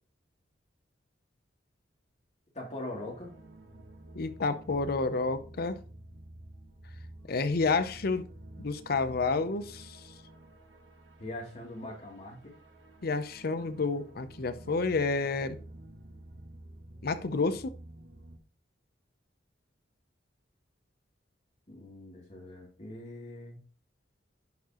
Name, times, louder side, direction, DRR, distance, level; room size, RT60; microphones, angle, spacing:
voice 1, 2.5-3.3 11.2-12.5 21.7-23.6, left 1 dB, 40° left, 2.8 m, -42 dB
sound 1, 2.9-18.4, right 1 dB, 80° right, 1.3 m, -50 dB
voice 2, 4.2-5.8 7.3-8.3 8.6-10.0 13.0-15.6 17.0-17.7, left 3 dB, 55° left, 0.6 m, -30 dB
10.5 x 4.6 x 3.0 m
head